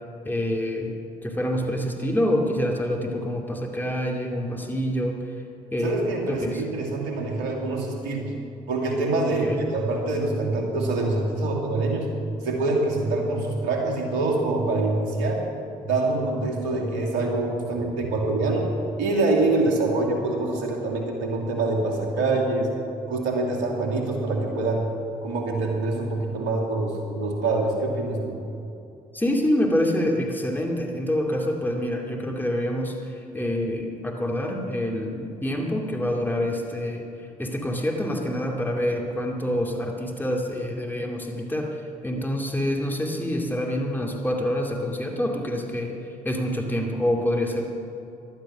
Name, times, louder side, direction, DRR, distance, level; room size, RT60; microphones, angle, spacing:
voice 1, 0.2-1.0 1.2-5.2 5.7-6.6 9.4-9.6 29.1-46.0 46.2-47.6, left 1 dB, 10° left, 0 dB, 2.6 m, -26 dB
voice 2, 5.8-8.3 8.7-12.1 12.4-15.5 15.8-18.7 19.0-22.7 23.1-24.9 25.2-28.4, right 2 dB, 75° right, 1 dB, 2.7 m, -25 dB
16.5 x 12.5 x 6.2 m, 2.7 s
hypercardioid pair, 50°, 18 cm